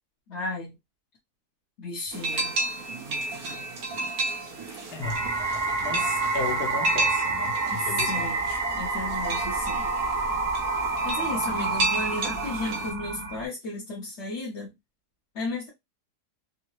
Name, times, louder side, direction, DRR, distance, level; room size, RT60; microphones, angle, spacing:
voice 1, 0.3-0.7 1.8-2.5 7.7-8.5 8.8-9.8 11.0-14.7 15.3-15.7, left 2 dB, 50° left, 1.1 m, -34 dB
sound 1, 2.1-12.9, right 2 dB, 65° right, 1.4 m, -32 dB
voice 2, 4.9-5.2 5.8-8.6, left 5 dB, 85° left, 1.4 m, -35 dB
sound 2, 5.0-13.4, right 3 dB, 45° right, 0.5 m, -28 dB
3.7 x 2.1 x 2.9 m
omnidirectional pair, 1.7 m